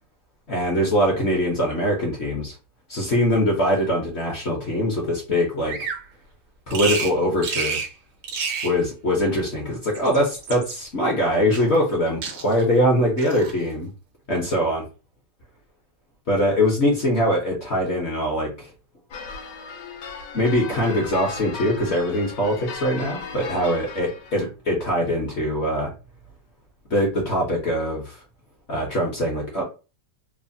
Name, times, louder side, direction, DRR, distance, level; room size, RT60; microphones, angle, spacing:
voice 1, 0.5-2.5 2.9-5.9 6.7-7.8 8.6-13.9 14.3-14.8 16.3-18.7 20.3-25.9 26.9-28.2 28.7-29.6, equal, 55° left, -2 dB, 0.8 m, -22 dB
Bird vocalization bird call bird song, 5.7-6.0 6.7-7.1 7.4-7.9 8.2-8.8 9.8-10.8 11.5-12.0 12.2-12.7 13.2-13.6, right 5 dB, 75° right, 1.2 m, -29 dB
sound 1, 19.1-24.5, left 5 dB, 75° left, 1.2 m, -36 dB
3.1 x 2.0 x 2.6 m, 0.32 s
omnidirectional pair, 1.9 m